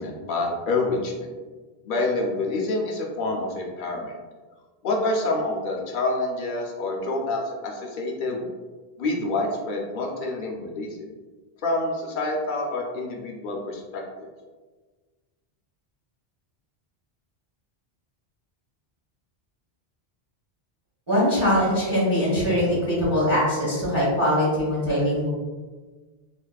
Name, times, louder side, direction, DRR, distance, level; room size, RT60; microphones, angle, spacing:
voice 1, 0.0-1.3 1.8-4.2 4.8-8.5 9.0-11.1 11.6-14.0, left 2 dB, 60° left, 0 dB, 0.6 m, -27 dB
voice 2, 21.1-25.3, equal, 25° right, -9 dB, 0.8 m, -22 dB
2.8 x 2.4 x 2.2 m, 1.3 s
omnidirectional pair, 1.1 m